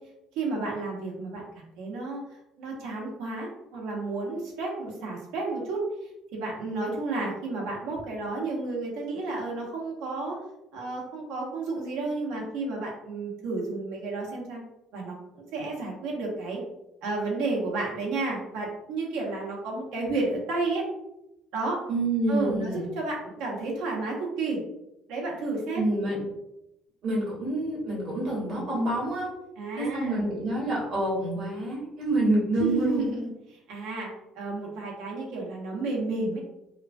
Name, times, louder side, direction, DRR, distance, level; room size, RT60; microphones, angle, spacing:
voice 1, 0.3-2.2 2.6-5.8 6.3-10.4 10.7-14.6 14.9-16.6 17.0-20.9 21.5-21.8 22.3-24.6 25.1-25.8 29.6-30.2 32.5-36.4, right 3 dB, 90° right, -2 dB, 0.9 m, -31 dB
voice 2, 21.9-22.8 25.7-26.2 27.0-29.3 29.8-33.1, right 1 dB, 50° right, -5 dB, 1.2 m, -27 dB
3.0 x 2.2 x 2.5 m, 0.88 s
cardioid pair, 170°, 0 cm